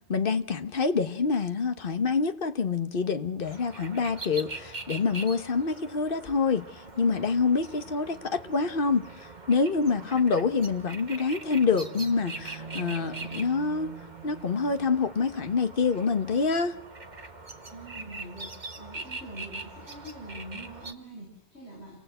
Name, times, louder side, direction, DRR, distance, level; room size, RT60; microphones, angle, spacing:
voice 1, 0.1-13.9 14.2-16.8, left 4 dB, 55° left, 1.5 m, -26 dB
sound 1, 3.4-20.9, right 3 dB, 45° right, 1.8 m, -42 dB
voice 2, 17.7-18.5 18.8-22.0, right 1 dB, 80° left, 8.5 m, -44 dB
29.0 x 21.0 x 8.1 m
omnidirectional pair, 1.1 m